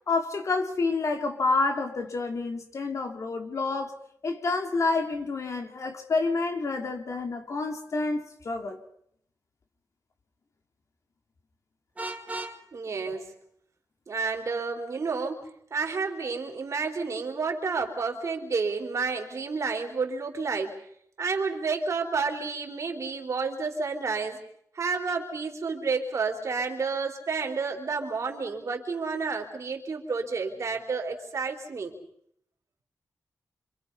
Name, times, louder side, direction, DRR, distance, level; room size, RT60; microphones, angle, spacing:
voice 1, 0.1-4.0 4.2-8.8 13.1-13.2, left 3 dB, 50° left, 2.8 m, -28 dB
Vehicle horn car horn honking, 12.0-12.6, right 2 dB, 20° right, 2.7 m, -35 dB
voice 2, 12.7-13.3 14.1-15.4 15.7-20.7 21.2-24.4 24.7-31.9, right 4 dB, 50° right, 4.1 m, -30 dB
27.5 x 26.5 x 5.6 m
wide cardioid pair, 125°, 7 cm